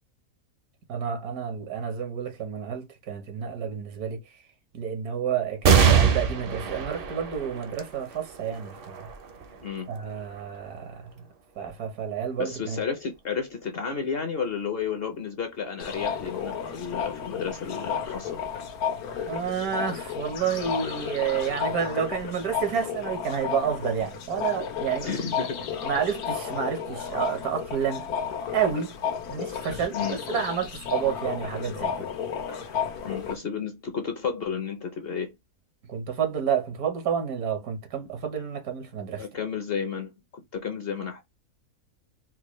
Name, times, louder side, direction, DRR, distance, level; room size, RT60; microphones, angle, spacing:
voice 1, 0.9-4.3 4.7-9.1 9.9-11.1 11.6-12.8 19.3-25.1 25.8-28.1 28.5-29.0 29.3-32.1 35.9-39.3, right 7 dB, 75° right, 1.5 m, -30 dB
sound 1, 5.6-12.5 13.1-13.2 14.4-14.9, right 7 dB, 50° right, 0.7 m, -26 dB
voice 2, 12.4-18.4 25.0-25.7 29.9-30.2 33.0-35.3 39.2-40.1 40.5-41.2, left 6 dB, 55° left, 0.7 m, -32 dB
sound 2, 15.8-33.4, left 7 dB, 90° left, 1.3 m, -33 dB
4.5 x 2.2 x 3.0 m
omnidirectional pair, 1.5 m